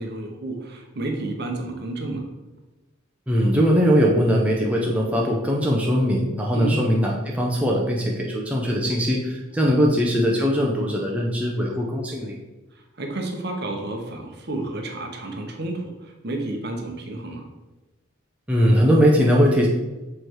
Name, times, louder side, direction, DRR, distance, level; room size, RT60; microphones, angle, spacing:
voice 1, 0.0-2.3 6.5-6.8 9.6-9.9 12.7-17.5, right 2 dB, 50° right, 3 dB, 0.9 m, -31 dB
voice 2, 3.3-12.4 18.5-19.7, equal, 5° right, -2 dB, 0.6 m, -20 dB
6.7 x 3.2 x 4.5 m, 1.1 s
head